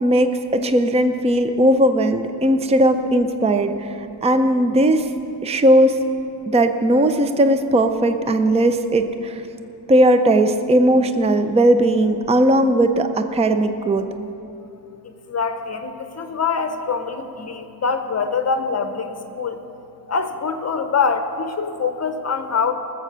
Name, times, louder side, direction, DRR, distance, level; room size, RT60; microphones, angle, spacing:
voice 1, 0.0-3.9 4.2-5.1 5.4-6.0 6.5-9.4 9.9-14.1, right 1 dB, 15° right, 8 dB, 0.5 m, -17 dB
voice 2, 15.0-19.6 20.1-22.7, left 5 dB, 40° left, 8 dB, 0.8 m, -24 dB
19.5 x 7.4 x 6.8 m, 2.8 s
wide cardioid pair, 170°, 40 cm